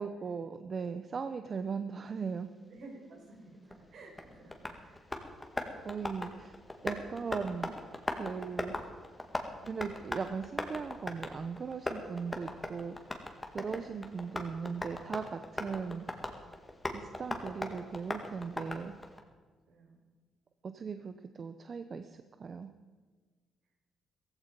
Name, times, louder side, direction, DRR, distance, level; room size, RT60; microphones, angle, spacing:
voice 1, 0.0-2.5 5.8-6.6 6.8-7.7 8.1-8.7 9.6-13.0 13.5-16.1 16.9-18.9 20.6-22.7, right 5 dB, 45° right, 9 dB, 0.8 m, -38 dB
voice 2, 2.7-5.0 19.7-20.0, right 2 dB, 65° right, 1 dB, 4.6 m, -53 dB
Tap, 3.7-19.2, left 1 dB, 15° left, 2.0 m, -40 dB
15.5 x 15.0 x 5.3 m, 1.4 s
cardioid pair, 90°, 0 cm